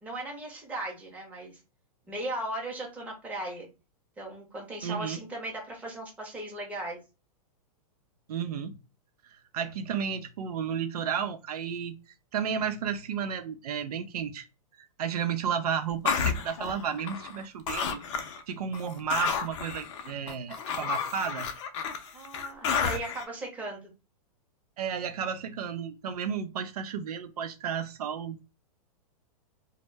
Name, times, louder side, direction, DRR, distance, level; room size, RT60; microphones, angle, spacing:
voice 1, 0.0-1.6 2.1-3.7 4.2-7.0 22.1-23.8, right 1 dB, 5° right, -1 dB, 0.7 m, -37 dB
voice 2, 4.8-5.2 8.3-8.7 9.5-11.9 12.3-14.4 15.0-18.0 18.5-21.5 24.8-28.4, right 7 dB, 85° right, 8 dB, 0.5 m, -32 dB
sound 1, 16.0-17.4 17.7-18.4 18.7-23.2, left 6 dB, 50° left, 0.5 m, -31 dB
2.1 x 2.1 x 3.2 m, 0.28 s
hypercardioid pair, 155°, 19 cm